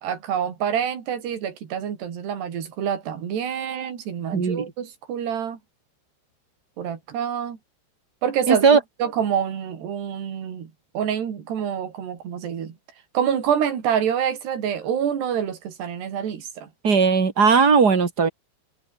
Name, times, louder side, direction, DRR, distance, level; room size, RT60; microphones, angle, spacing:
voice 1, 0.0-5.6 6.8-7.6 8.2-12.8 13.2-16.7, right 8 dB, 65° right, 5.3 m, -27 dB
voice 2, 4.3-4.6 8.5-8.8 16.8-18.3, right 5 dB, 25° right, 2.4 m, -17 dB
omnidirectional pair, 5.3 m